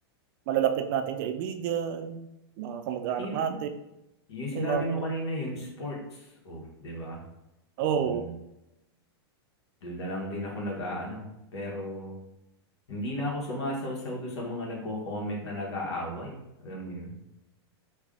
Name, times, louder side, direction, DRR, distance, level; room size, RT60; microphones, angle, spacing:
voice 1, 0.5-2.3 2.6-3.7 4.5-5.0 7.8-8.2, right 8 dB, 50° right, 8 dB, 0.4 m, -29 dB
voice 2, 3.1-3.6 4.3-7.2 7.9-8.3 9.8-12.1 12.9-17.2, equal, 80° left, -2 dB, 1.3 m, -34 dB
3.4 x 2.4 x 3.6 m, 0.89 s
hypercardioid pair, 130°, 14 cm